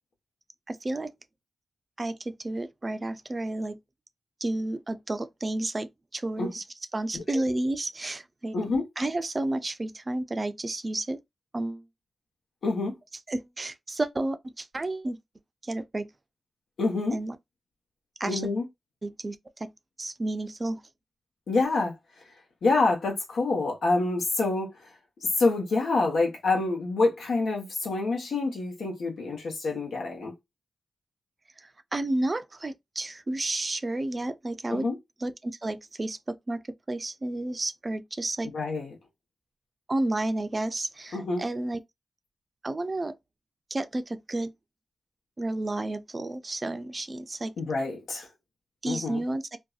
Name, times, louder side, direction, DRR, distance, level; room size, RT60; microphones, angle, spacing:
voice 1, 0.7-1.1 2.0-3.8 4.4-6.6 6.9-8.5 9.0-11.2 11.5-11.8 13.3-15.2 15.6-16.1 17.1-17.4 18.2-18.5 19.0-19.7 20.0-20.8 31.6-34.9 35.2-36.6 36.9-38.5 39.9-41.8 42.6-43.1 43.7-44.5 45.4-47.5 48.8-49.6, right 2 dB, 35° right, 0.4 m, -31 dB
voice 2, 12.6-12.9 16.8-17.2 18.2-18.6 21.5-21.9 22.6-24.7 25.4-30.3 34.7-35.0 38.5-39.0 41.1-41.4 47.6-48.3 48.9-49.2, left 3 dB, 85° left, 0.9 m, -27 dB
2.6 x 2.2 x 2.3 m
cardioid pair, 55°, 0 cm